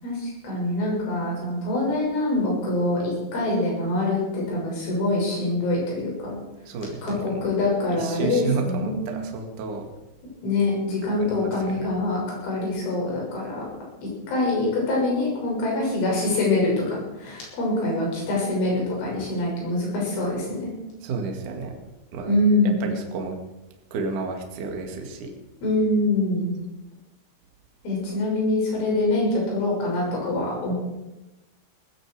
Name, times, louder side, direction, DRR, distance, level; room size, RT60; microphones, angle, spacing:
voice 1, 0.0-6.4 7.0-9.0 10.4-13.6 14.3-16.7 17.2-20.7 22.3-22.7 25.6-26.5 27.8-30.7, left 2 dB, 85° left, -3 dB, 9.2 m, -24 dB
voice 2, 6.7-7.6 7.9-9.9 11.2-11.9 21.0-21.8 22.1-22.3 22.6-23.4 23.9-25.3, right 4 dB, 50° right, 3 dB, 2.9 m, -31 dB
18.5 x 15.5 x 4.9 m, 1.0 s
omnidirectional pair, 5.4 m